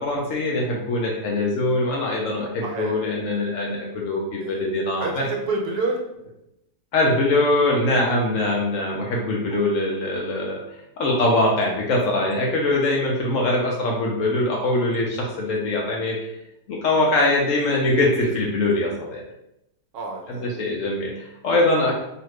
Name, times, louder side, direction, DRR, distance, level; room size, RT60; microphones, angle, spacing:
voice 1, 0.0-5.2 6.9-10.6 11.0-16.2 16.7-19.2 20.4-21.9, left 2 dB, 70° left, -1 dB, 0.8 m, -22 dB
voice 2, 2.6-3.0 4.4-4.7 5.0-6.0 9.5-9.6 19.9-20.7, right 3 dB, 75° right, 1 dB, 1.1 m, -29 dB
2.8 x 2.4 x 3.1 m, 0.84 s
omnidirectional pair, 1.7 m